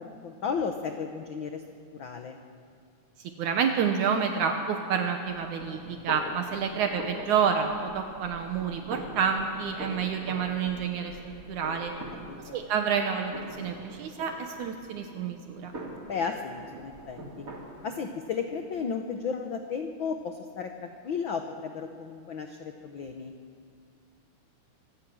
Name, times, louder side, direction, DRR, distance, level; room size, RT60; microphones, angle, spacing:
voice 1, 0.0-1.6 1.9-2.4 12.0-12.6 16.1-17.4 17.8-23.3, left 6 dB, 85° left, 5 dB, 1.0 m, -34 dB
voice 2, 3.4-11.9 12.5-15.7, right 7 dB, 70° right, 5 dB, 2.4 m, -29 dB
sound 1, 5.2-17.9, right 1 dB, 30° right, 2.5 m, -43 dB
24.5 x 16.5 x 6.3 m, 2.2 s
omnidirectional pair, 3.7 m